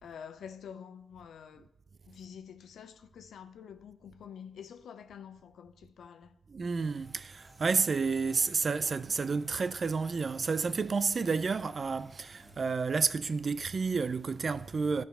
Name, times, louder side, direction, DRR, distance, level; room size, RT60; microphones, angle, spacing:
voice 1, 0.0-1.7 2.0-6.4, left 7 dB, 80° left, 0.6 m, -48 dB
voice 2, 6.5-15.0, right 4 dB, 50° right, 0.4 m, -30 dB
sound 1, 6.8-12.6, equal, 5° right, 1.6 m, -58 dB
12.5 x 4.8 x 5.5 m
supercardioid pair, 50°, 0 cm